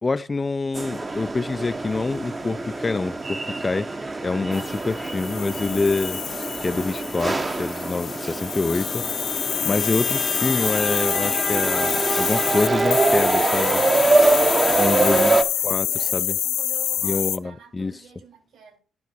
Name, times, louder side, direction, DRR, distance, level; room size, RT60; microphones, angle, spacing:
voice 1, 0.0-3.9 4.2-6.2 6.6-9.0 9.6-13.8 14.8-15.4 15.6-15.9 16.1-16.3 17.0-17.9, left 3 dB, 25° left, 0.5 m, -26 dB
sound 1, 0.7-15.4, right 3 dB, 25° right, 1.0 m, -24 dB
sound 2, 4.5-17.4, left 11 dB, 80° left, 0.6 m, -27 dB
voice 2, 14.7-18.8, right 5 dB, 70° right, 6.1 m, -46 dB
11.0 x 5.2 x 6.1 m
cardioid pair, 90°, 0 cm